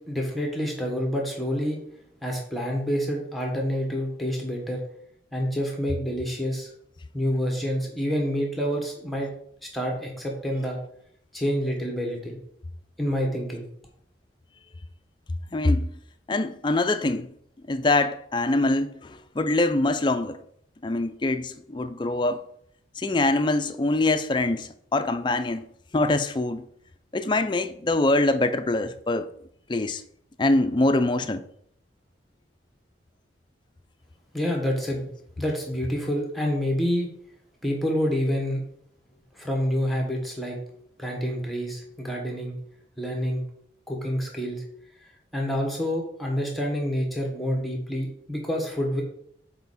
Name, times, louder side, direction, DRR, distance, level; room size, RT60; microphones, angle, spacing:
voice 1, 0.1-1.8 2.2-4.8 5.3-6.7 7.1-9.3 9.6-10.8 11.3-12.4 13.0-13.7 34.3-35.1 35.4-37.1 37.6-38.6 39.3-40.6 41.0-42.5 43.0-43.4 43.9-44.6 45.3-49.0, equal, ahead, 1.3 m, -27 dB
voice 2, 15.5-15.9 16.3-17.3 17.7-20.4 20.8-22.4 23.0-25.6 25.9-26.6 27.1-29.3 29.7-30.0 30.4-31.4, left 2 dB, 25° left, 0.4 m, -24 dB
6.9 x 4.4 x 4.1 m
head